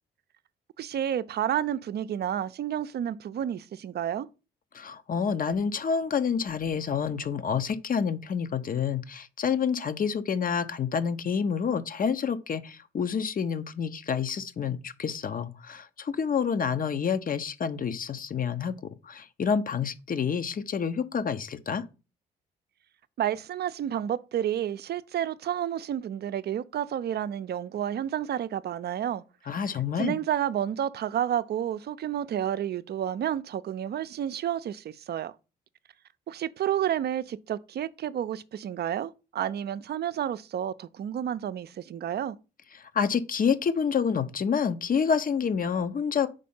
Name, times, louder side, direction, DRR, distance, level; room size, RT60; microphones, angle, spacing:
voice 1, 0.8-4.3 23.2-29.2 30.0-35.3 36.3-42.4, right 10 dB, 55° right, 0.5 m, -30 dB
voice 2, 4.7-18.7 19.0-21.8 29.5-30.1 42.9-46.3, left 6 dB, 45° left, 0.8 m, -28 dB
5.2 x 4.2 x 5.5 m
hypercardioid pair, 50°, 20 cm